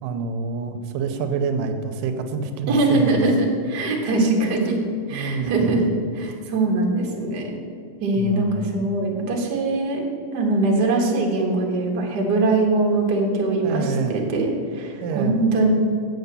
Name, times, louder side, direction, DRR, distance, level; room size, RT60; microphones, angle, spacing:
voice 1, 0.0-3.4 5.1-5.8 8.2-8.8 13.6-14.3 15.0-15.4, right 4 dB, 85° right, 7 dB, 2.3 m, -27 dB
voice 2, 2.7-4.8 5.1-5.8 6.1-7.5 8.0-10.0 10.3-15.7, right 2 dB, 45° right, -1 dB, 1.5 m, -22 dB
7.9 x 7.7 x 6.8 m, 2.2 s
omnidirectional pair, 3.8 m